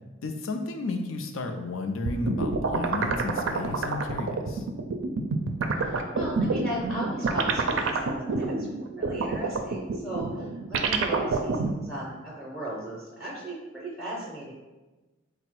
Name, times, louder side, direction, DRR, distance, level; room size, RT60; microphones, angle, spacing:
voice 1, 0.2-4.6, left 2 dB, 90° left, 5 dB, 0.5 m, -32 dB
sound 1, 2.1-11.7, right 4 dB, 70° right, 0.4 m, -27 dB
voice 2, 5.8-8.6 8.9-14.5, right 1 dB, ahead, -4 dB, 0.6 m, -36 dB
4.0 x 2.0 x 4.4 m, 1.2 s
head